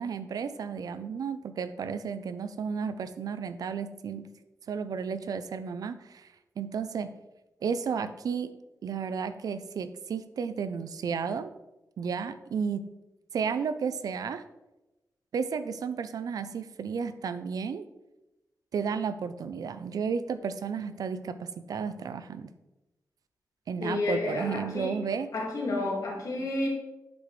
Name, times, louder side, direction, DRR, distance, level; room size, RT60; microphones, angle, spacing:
voice 1, 0.0-4.3 4.7-6.3 6.6-7.1 7.6-8.5 8.8-11.5 12.0-12.8 13.3-14.4 15.3-17.9 18.7-22.5 23.7-25.3 26.4-26.5, right 6 dB, 80° right, 12 dB, 0.5 m, -33 dB
voice 2, 23.8-24.9 25.3-26.7, left 2 dB, 65° left, -2 dB, 2.0 m, -30 dB
8.5 x 6.1 x 3.2 m, 1.0 s
wide cardioid pair, 165°, 6 cm